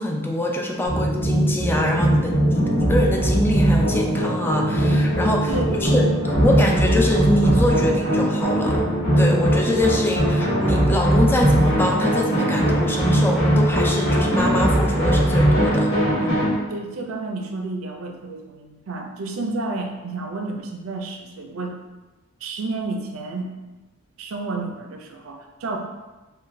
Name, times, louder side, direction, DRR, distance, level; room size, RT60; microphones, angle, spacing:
voice 1, 0.0-5.5 5.8-6.1 6.4-15.9 16.2-16.5, left 1 dB, 10° left, 1 dB, 0.3 m, -24 dB
sound 1, 0.9-16.5, right 1 dB, 55° left, 1.4 m, -20 dB
voice 2, 5.5-5.9 16.7-21.7 22.4-23.5 24.2-25.8, right 3 dB, 75° right, 3 dB, 0.5 m, -30 dB
3.9 x 2.2 x 2.6 m, 1.1 s
head